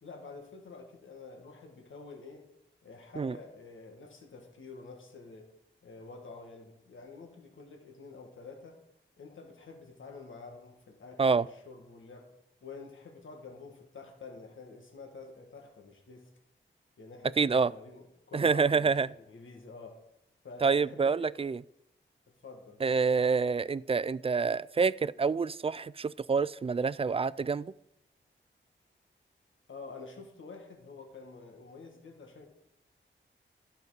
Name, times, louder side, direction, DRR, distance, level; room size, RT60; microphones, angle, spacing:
voice 1, 0.0-2.5 2.8-5.5 5.8-8.8 9.2-12.3 12.6-16.3 17.0-20.0 20.4-21.4 22.4-22.8 29.7-32.5, left 4 dB, 75° left, 1.8 m, -48 dB
voice 2, 17.4-17.7 18.3-19.1 20.6-21.6 22.8-27.7, right 5 dB, 30° right, 0.3 m, -27 dB
12.0 x 6.7 x 4.9 m
cardioid pair, 60°, 20 cm